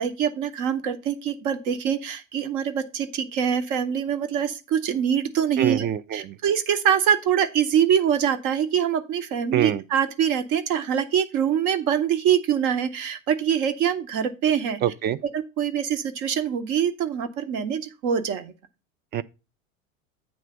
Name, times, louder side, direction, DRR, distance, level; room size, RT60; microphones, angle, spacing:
voice 1, 0.0-5.9 6.1-14.8 15.3-18.5, right 8 dB, 50° right, 1.1 m, -24 dB
voice 2, 5.6-6.4 9.5-9.8 14.8-15.2 19.1-19.2, right 10 dB, 25° right, 0.4 m, -24 dB
8.8 x 3.3 x 6.6 m
figure-of-eight pair, 80°, 39 cm